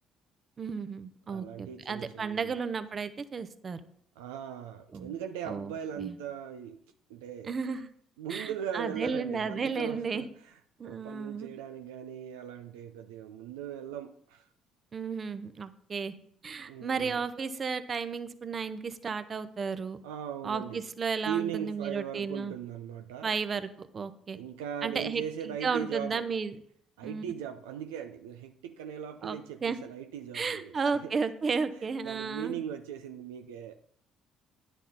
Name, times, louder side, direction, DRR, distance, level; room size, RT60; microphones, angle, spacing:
voice 1, 0.6-3.8 4.9-5.2 5.5-6.2 7.4-7.9 8.3-10.3 10.8-11.5 14.9-16.1 16.4-20.0 20.4-22.5 23.2-24.4 24.8-26.5 27.0-27.2 29.2-29.8 30.3-32.6, right 5 dB, 40° right, 0.8 m, -33 dB
voice 2, 1.3-2.5 4.2-6.8 7.1-7.6 8.2-10.5 10.8-14.4 16.7-17.2 20.0-20.8 21.2-23.3 24.3-26.3 27.0-30.7 31.0-31.1 32.0-33.7, right 9 dB, 85° right, 0.4 m, -39 dB
10.0 x 6.4 x 4.1 m
hypercardioid pair, 55°, 0 cm